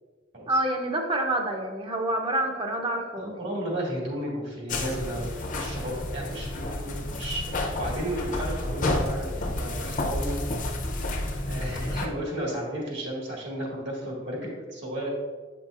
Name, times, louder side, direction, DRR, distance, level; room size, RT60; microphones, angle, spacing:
voice 1, 0.5-3.4, right 1 dB, 25° right, 3 dB, 0.7 m, -27 dB
voice 2, 3.2-10.4 11.5-15.1, right 1 dB, 65° right, -3 dB, 1.8 m, -33 dB
sound 1, 4.7-12.1, left 1 dB, 45° left, 0.7 m, -30 dB
7.9 x 5.7 x 2.5 m, 1.5 s
head